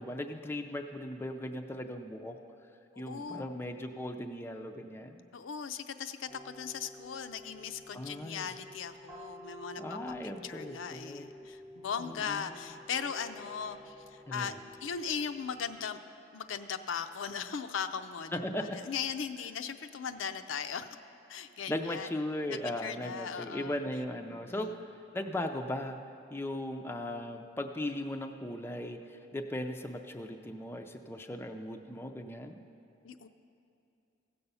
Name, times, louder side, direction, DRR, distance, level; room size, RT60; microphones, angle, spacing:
voice 1, 0.0-2.4 3.0-5.2 7.9-8.5 9.8-11.3 12.0-12.7 14.3-14.6 18.3-18.8 21.7-26.0 26.3-32.6, left 1 dB, 10° left, 5 dB, 0.4 m, -38 dB
voice 2, 2.9-3.6 5.3-10.0 10.4-16.0 16.3-20.9 21.3-22.1 22.5-23.8 24.3-24.8 33.0-33.3, left 7 dB, 75° left, 9 dB, 0.5 m, -38 dB
sound 1, 6.3-15.9, left 1 dB, 5° right, 0.8 m, -51 dB
16.0 x 6.9 x 5.5 m, 2.6 s
head